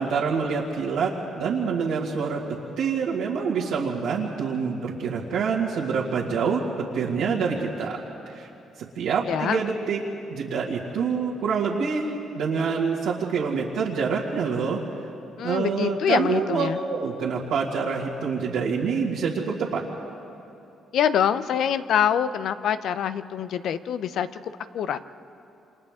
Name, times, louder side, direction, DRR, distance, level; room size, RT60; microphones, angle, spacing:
voice 1, 0.0-2.4 2.8-6.6 6.9-8.0 8.3-8.5 8.8-10.0 10.3-14.8 15.4-19.8, right 5 dB, 90° right, -6 dB, 2.1 m, -26 dB
voice 2, 9.3-9.6 15.4-16.8 20.9-25.0, left 9 dB, 75° left, 12 dB, 0.7 m, -25 dB
28.5 x 27.0 x 3.7 m, 2.8 s
cardioid pair, 90°, 0 cm